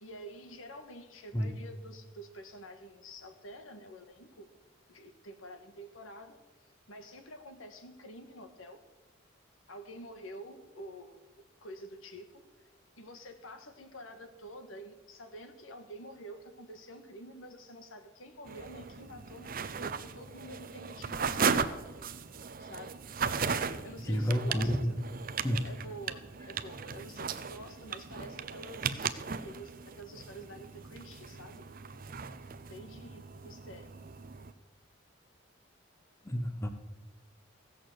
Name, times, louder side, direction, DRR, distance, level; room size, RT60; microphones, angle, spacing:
voice 1, 0.0-4.5 4.9-8.8 9.7-11.2 11.6-12.3 12.6-12.7 13.0-21.8 22.6-22.9 23.8-25.0 25.6-31.6 32.7-33.9, equal, 85° left, 7 dB, 1.6 m, -48 dB
sound 1, 18.5-34.5, right 5 dB, 45° right, 0.6 m, -37 dB
voice 2, 24.1-24.9 25.4-25.7 36.2-36.7, equal, 15° left, 8 dB, 0.8 m, -30 dB
16.0 x 6.7 x 7.8 m, 1.1 s
head